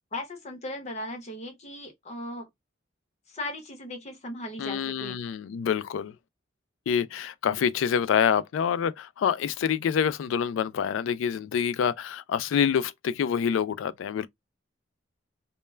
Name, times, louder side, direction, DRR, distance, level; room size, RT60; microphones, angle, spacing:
voice 1, 0.1-2.5 3.3-5.2, left 1 dB, 35° left, 0.8 m, -37 dB
voice 2, 4.6-6.1 6.9-14.3, left 7 dB, 90° left, 0.3 m, -26 dB
2.2 x 2.1 x 3.1 m
head